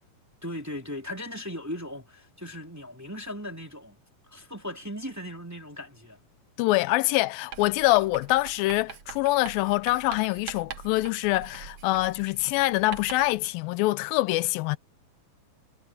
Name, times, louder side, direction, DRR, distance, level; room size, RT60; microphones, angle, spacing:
voice 1, 0.4-4.0 4.3-6.2, left 1 dB, 5° right, 2.4 m, -37 dB
voice 2, 6.6-14.8, left 19 dB, 85° left, 2.3 m, -25 dB
Writing, 7.5-13.4, right 8 dB, 55° right, 2.4 m, -43 dB
omnidirectional pair, 4.1 m